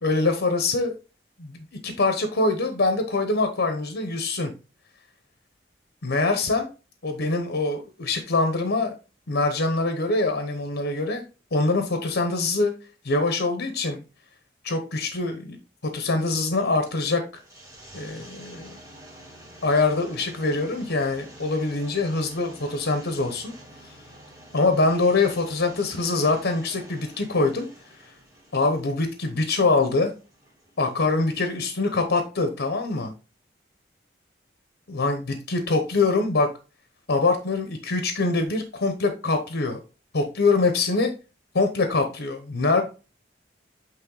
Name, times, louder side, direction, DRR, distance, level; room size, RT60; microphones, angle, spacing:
voice 1, 0.0-0.9 1.4-4.5 6.0-6.7 7.0-8.9 9.3-11.2 11.5-12.7 13.0-14.0 14.6-15.6 15.8-17.2 17.9-18.8 19.6-23.5 23.8-23.9 24.5-27.7 28.0-28.1 28.5-30.1 30.8-33.1 34.9-36.5 37.1-39.8 40.1-41.1 41.5-42.8, left 3 dB, 80° left, 6 dB, 0.9 m, -24 dB
sound 1, 16.7-31.9, right 1 dB, 15° right, 1.9 m, -48 dB
8.9 x 3.1 x 3.9 m, 0.32 s
head